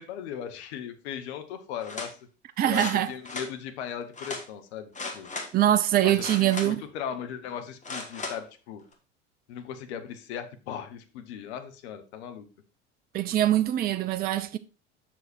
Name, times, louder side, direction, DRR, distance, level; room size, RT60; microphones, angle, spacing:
voice 1, 0.0-2.2 2.7-5.3 6.0-8.8 9.5-12.5, left 8 dB, 65° left, 1.4 m, -38 dB
sound 1, 1.8-2.1 2.7-3.5 4.2-4.4 4.9-5.5 6.1-6.9 7.8-8.4 8.9-9.0, left 3 dB, 20° left, 1.9 m, -36 dB
voice 2, 2.6-3.1 5.5-6.8 13.1-14.6, right 12 dB, 25° right, 0.5 m, -23 dB
7.5 x 6.3 x 4.3 m
figure-of-eight pair, 70°, 36 cm